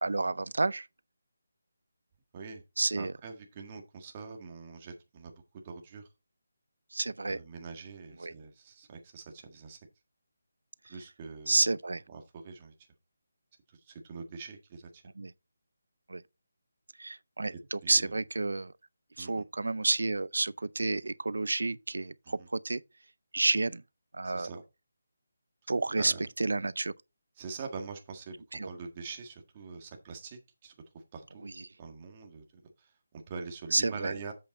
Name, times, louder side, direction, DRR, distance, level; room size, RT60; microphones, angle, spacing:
voice 1, 0.0-0.9 2.8-3.1 6.9-7.4 8.2-8.3 11.5-12.0 15.2-15.3 16.1-16.2 17.0-18.7 19.2-22.8 23.3-23.8 24.1-24.5 25.7-26.9 28.5-28.7 31.4-31.7 33.7-34.1, right 3 dB, 85° right, 0.5 m, -30 dB
voice 2, 2.9-6.1 7.3-9.8 10.9-11.7 12.1-12.7 13.7-15.0 17.5-18.1 19.2-19.4 22.2-22.5 24.2-24.6 26.0-26.3 27.4-31.5 31.8-32.4 32.8-34.3, right 5 dB, 25° right, 1.7 m, -44 dB
7.8 x 6.9 x 4.1 m
figure-of-eight pair, 170°, 0 cm